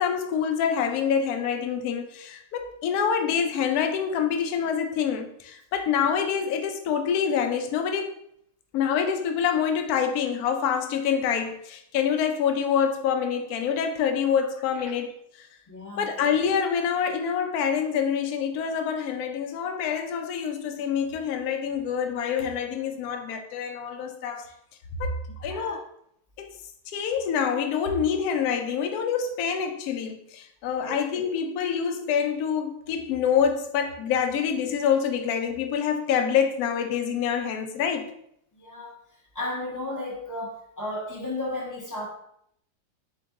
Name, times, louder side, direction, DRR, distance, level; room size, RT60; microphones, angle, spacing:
voice 1, 0.0-8.1 8.7-15.5 16.0-24.5 25.0-25.1 25.4-25.8 26.4-26.5 26.9-38.1, left 7 dB, 70° left, 5 dB, 1.0 m, -26 dB
voice 2, 15.7-16.1 24.5-24.6 25.5-25.8 30.8-31.0 38.5-38.9 39.3-42.1, left 1 dB, 15° left, -5 dB, 0.6 m, -34 dB
4.4 x 2.8 x 3.6 m, 0.72 s
omnidirectional pair, 1.8 m